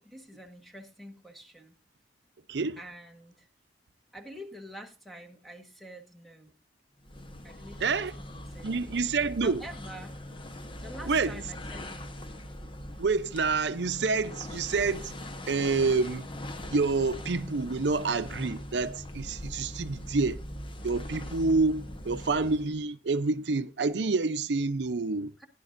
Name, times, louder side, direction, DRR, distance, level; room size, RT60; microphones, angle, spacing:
voice 1, 0.0-1.8 2.8-3.5 4.1-6.5 7.4-9.0 9.4-10.2 10.8-12.2 25.4-25.5, equal, ahead, 1.3 m, -47 dB
voice 2, 2.5-2.8 7.8-8.1 8.6-9.6 11.1-11.4 13.0-15.1 15.5-16.3 16.7-20.4 20.8-25.4, right 4 dB, 70° right, 0.6 m, -28 dB
sound 1, 7.0-22.8, left 1 dB, 30° left, 1.0 m, -41 dB
16.0 x 10.5 x 2.6 m
head